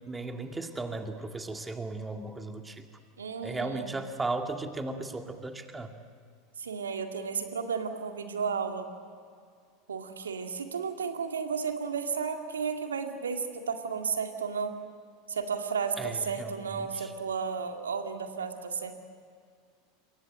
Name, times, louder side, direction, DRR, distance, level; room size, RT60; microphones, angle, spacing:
voice 1, 0.1-2.9 3.4-5.9 16.0-17.1, right 2 dB, 15° right, 5 dB, 2.2 m, -36 dB
voice 2, 3.2-3.9 6.6-8.9 9.9-14.8 15.3-18.9, right 6 dB, 80° right, 5 dB, 2.1 m, -33 dB
27.5 x 23.0 x 7.7 m, 2.2 s
figure-of-eight pair, 80°, 0 cm